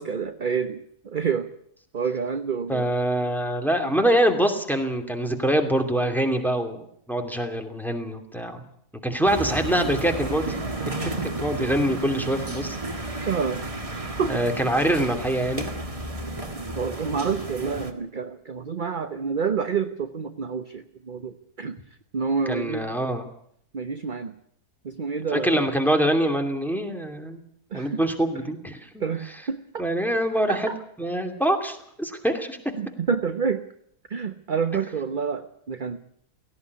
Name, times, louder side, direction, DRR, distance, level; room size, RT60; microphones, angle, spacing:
voice 1, 0.0-1.5 1.9-2.9 3.8-4.0 11.2-11.3 13.3-13.6 13.9-14.4 16.7-21.8 22.1-22.9 23.7-24.3 24.8-25.6 27.7-28.0 29.0-29.8 30.5-30.8 32.8-33.6 34.1-36.0, right 6 dB, 35° right, 8 dB, 1.0 m, -28 dB
voice 2, 2.7-8.6 9.0-10.6 11.0-12.8 14.3-15.7 22.5-23.3 25.3-27.4 27.7-29.0 29.8-30.7 31.0-32.6, right 1 dB, ahead, 4 dB, 2.6 m, -24 dB
sound 1, 9.3-17.9, right 2 dB, 20° right, 2.0 m, -32 dB
17.5 x 17.0 x 9.6 m, 0.68 s
omnidirectional pair, 1.7 m